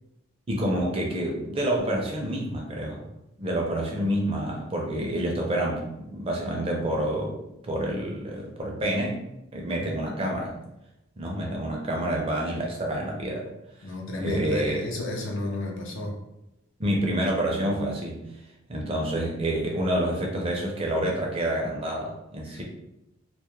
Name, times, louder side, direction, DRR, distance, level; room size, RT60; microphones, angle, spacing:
voice 1, 0.5-3.1 3.4-9.2 9.5-10.5 11.2-13.5 14.2-14.8 16.8-18.2 18.7-22.6, right 1 dB, 25° right, -1 dB, 0.4 m, -28 dB
voice 2, 13.8-16.2 22.5-22.6, left 1 dB, 65° left, 0 dB, 0.5 m, -31 dB
2.2 x 2.0 x 2.9 m, 0.88 s
head